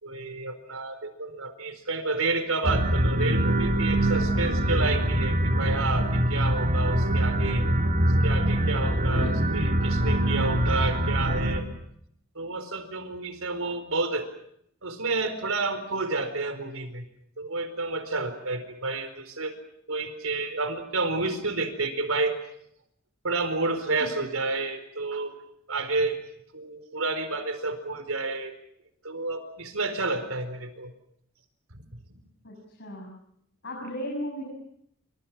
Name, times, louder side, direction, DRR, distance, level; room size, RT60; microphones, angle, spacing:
voice 1, 0.0-7.7 8.0-11.6 12.3-14.3 14.8-17.1 17.4-19.5 19.9-22.4 23.2-25.4 25.7-26.2 26.5-28.5 29.0-30.9 31.7-32.2, right 3 dB, 85° right, 10 dB, 4.4 m, -30 dB
sound 1, 2.6-11.6, right 1 dB, 40° right, 3.7 m, -24 dB
voice 2, 6.8-7.2 8.8-9.4 24.0-24.1 32.4-33.2 33.6-34.5, equal, 60° left, -1 dB, 7.1 m, -36 dB
28.5 x 25.0 x 6.2 m, 0.72 s
head